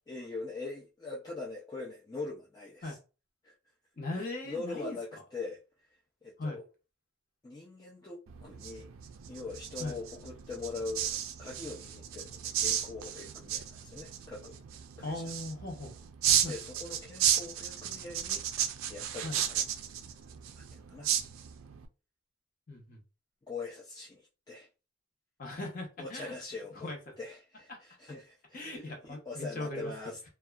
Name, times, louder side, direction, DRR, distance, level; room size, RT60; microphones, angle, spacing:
voice 1, 0.1-3.0 3.4-3.5 4.1-5.6 6.2-6.6 7.4-8.9 9.3-14.6 15.0-15.3 16.4-18.6 18.9-19.6 20.5-21.1 23.5-24.7 26.0-26.9 27.2-30.3, left 3 dB, 20° left, 0.3 m, -42 dB
voice 2, 4.0-5.0 6.4-6.6 9.8-10.0 15.0-15.9 16.4-16.6 19.2-19.4 22.7-23.0 25.4-26.3 26.8-27.0 27.7-27.8 28.5-29.9, left 2 dB, 40° left, 0.7 m, -38 dB
sound 1, 8.3-21.8, right 9 dB, 70° right, 0.3 m, -34 dB
2.6 x 2.2 x 2.3 m
head